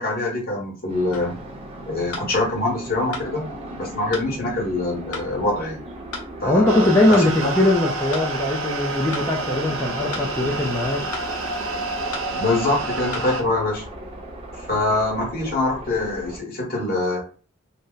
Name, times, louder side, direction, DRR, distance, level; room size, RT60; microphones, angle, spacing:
voice 1, 0.0-1.4 1.9-3.4 3.8-5.9 6.4-7.5 12.3-13.8 14.7-17.2, left 2 dB, 45° left, -3 dB, 1.2 m, -24 dB
sound 1, 0.9-16.4, right 1 dB, 30° right, 0.7 m, -38 dB
sound 2, 1.1-1.3 2.1-2.3 3.1-3.3 4.1-4.3 5.1-5.3 6.1-6.3 7.1-7.3 8.1-8.3 9.1-9.3 10.1-10.3 11.1-11.3 12.1-12.3 13.1-13.3, left 3 dB, 80° left, 0.8 m, -34 dB
voice 2, 6.5-11.0, left 1 dB, 10° left, -2 dB, 0.4 m, -20 dB
sound 3, 6.7-13.4, right 3 dB, 85° right, 0.7 m, -29 dB
2.6 x 2.1 x 3.8 m, 0.38 s
head